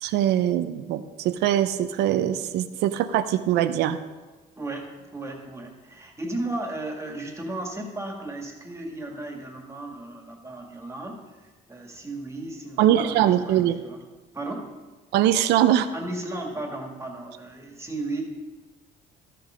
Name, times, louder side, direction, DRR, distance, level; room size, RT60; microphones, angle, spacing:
voice 1, 0.0-4.0 12.8-13.8 15.1-15.9, right 11 dB, 85° right, 12 dB, 0.7 m, -22 dB
voice 2, 4.6-14.0 14.3-14.7 15.9-18.2, right 2 dB, 15° right, 1 dB, 2.1 m, -35 dB
13.5 x 6.8 x 5.1 m, 1.3 s
cardioid pair, 110°, 17 cm